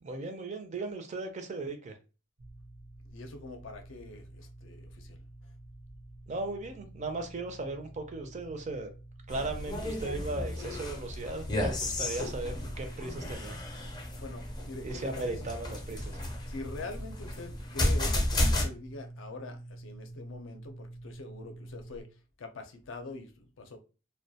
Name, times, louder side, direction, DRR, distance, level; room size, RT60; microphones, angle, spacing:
voice 1, 0.0-2.0 6.3-8.9 9.3-13.6 14.8-16.2, right 2 dB, 35° right, 0.4 m, -37 dB
sound 1, 2.4-22.0, right 1 dB, 85° right, 0.7 m, -48 dB
voice 2, 3.1-5.2 14.2-15.4 16.5-22.1 22.4-23.8, left 2 dB, 75° left, 0.5 m, -44 dB
sound 2, 9.3-18.7, left 1 dB, 20° left, 0.5 m, -33 dB
2.2 x 2.1 x 2.7 m
head